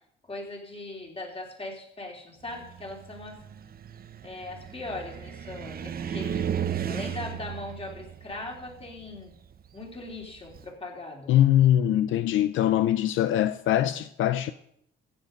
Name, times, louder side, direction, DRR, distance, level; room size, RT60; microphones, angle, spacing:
voice 1, 0.2-3.4 4.2-9.3 9.7-11.4, left 2 dB, 30° left, 3.3 m, -39 dB
Car, 2.5-10.7, right 8 dB, 50° right, 0.8 m, -35 dB
voice 2, 11.3-14.5, left 12 dB, 80° left, 0.5 m, -22 dB
15.0 x 7.4 x 5.2 m
cardioid pair, 90°, 20 cm